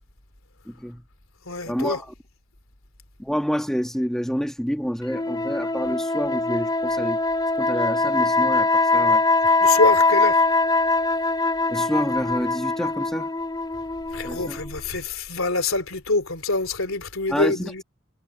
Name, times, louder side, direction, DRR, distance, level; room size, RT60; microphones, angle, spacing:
voice 1, 0.7-1.0 1.7-2.1 3.2-7.2 7.6-9.2 11.7-13.3 14.2-14.6 17.3-17.7, equal, ahead, 1.7 m, -28 dB
voice 2, 1.5-2.0 9.6-10.4 14.1-17.8, left 3 dB, 75° left, 3.3 m, -25 dB
sound 1, 5.1-14.8, left 3 dB, 20° left, 2.6 m, -22 dB
head